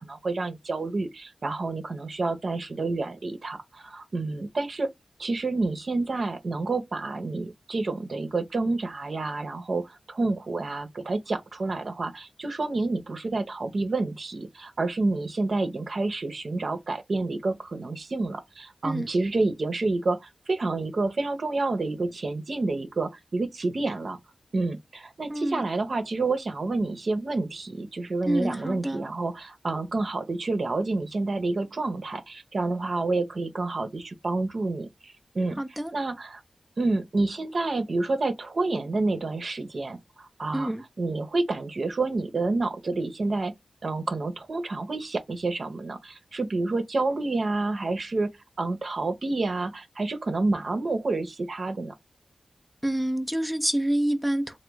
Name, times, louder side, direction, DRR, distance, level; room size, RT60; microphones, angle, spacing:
voice 1, 0.0-4.9 5.2-24.2 24.5-35.6 35.9-36.4 36.8-40.7 41.0-43.5 43.8-48.3 48.6-51.9, right 3 dB, 60° right, 0.7 m, -29 dB
voice 2, 25.3-25.6 28.2-29.0 35.6-35.9 40.5-40.8 52.8-54.6, right 1 dB, ahead, 0.5 m, -27 dB
3.5 x 2.2 x 3.1 m
wide cardioid pair, 90°, 0 cm